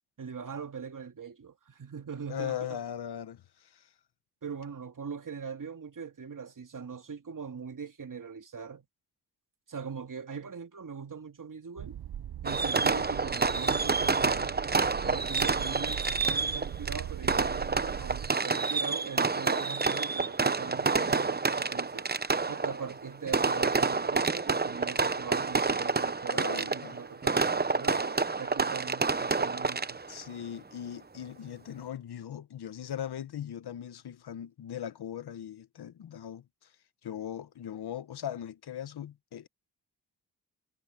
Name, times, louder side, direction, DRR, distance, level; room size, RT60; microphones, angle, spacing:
voice 1, 0.2-2.8 4.4-8.9 9.7-12.0 12.4-14.6 15.0-22.1 22.4-30.0, right 6 dB, 55° right, 2.5 m, -41 dB
voice 2, 2.3-3.9 26.3-26.9 30.1-36.7 37.0-39.5, left 10 dB, 75° left, 1.2 m, -39 dB
sound 1, 11.8-18.3, right 10 dB, 70° right, 1.0 m, -40 dB
Fireworks, 12.5-30.2, right 4 dB, 25° right, 0.9 m, -28 dB
cardioid pair, 50°, 39 cm